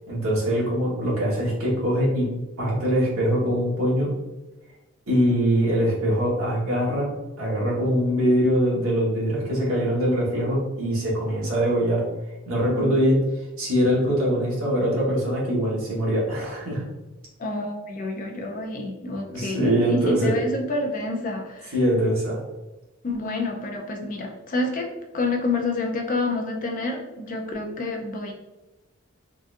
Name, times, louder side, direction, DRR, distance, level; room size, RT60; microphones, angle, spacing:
voice 1, 0.1-2.3 2.6-4.1 5.1-7.1 7.4-12.0 12.4-13.2 13.6-16.8 19.3-20.3 21.7-22.4, equal, 85° right, -5 dB, 1.3 m, -23 dB
voice 2, 17.4-21.7 23.0-28.3, left 2 dB, 40° left, 2 dB, 0.5 m, -28 dB
3.8 x 2.4 x 2.5 m, 1.1 s
head